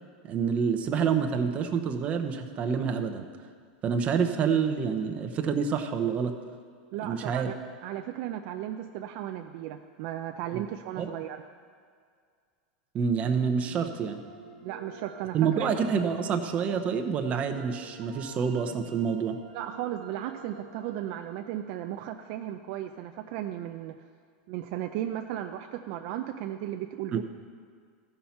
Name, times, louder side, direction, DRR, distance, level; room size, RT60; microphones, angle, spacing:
voice 1, 0.2-3.3 3.8-6.3 7.0-7.5 10.5-10.6 11.0-11.1 12.9-14.2 15.3-19.4 27.1-27.2, right 6 dB, 30° right, 5 dB, 0.8 m, -27 dB
voice 2, 6.9-7.5 7.8-11.4 14.6-15.7 19.5-24.0 24.5-27.2, right 12 dB, 55° right, 6 dB, 0.4 m, -35 dB
sound 1, 13.5-22.7, right 5 dB, 75° right, 1.3 m, -49 dB
15.0 x 5.8 x 4.3 m, 2.1 s
supercardioid pair, 130°, 5 cm